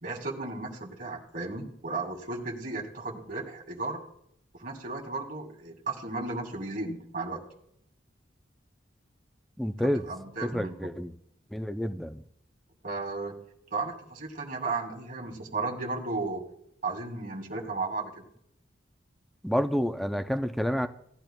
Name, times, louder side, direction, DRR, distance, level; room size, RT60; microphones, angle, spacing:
voice 1, 0.0-4.0 4.5-7.4 10.0-10.7 12.8-13.4 13.7-16.4 16.8-18.2, right 3 dB, 50° right, 1 dB, 2.0 m, -34 dB
voice 2, 9.6-10.1 10.5-11.1 11.5-12.2 19.4-20.9, equal, ahead, 8 dB, 0.4 m, -29 dB
17.0 x 10.5 x 2.2 m, 0.72 s
head